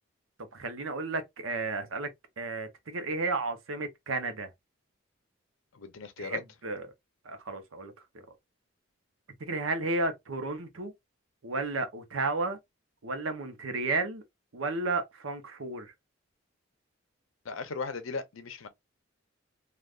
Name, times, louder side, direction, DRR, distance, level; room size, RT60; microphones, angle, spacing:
voice 1, 0.4-2.1 2.4-4.5 6.2-6.9 7.2-8.4 9.4-10.9 11.4-12.6 13.0-14.2 14.5-15.9, right 3 dB, 80° right, 0.7 m, -33 dB
voice 2, 5.7-6.4 17.4-18.7, left 4 dB, 85° left, 0.6 m, -37 dB
3.4 x 2.3 x 2.4 m
head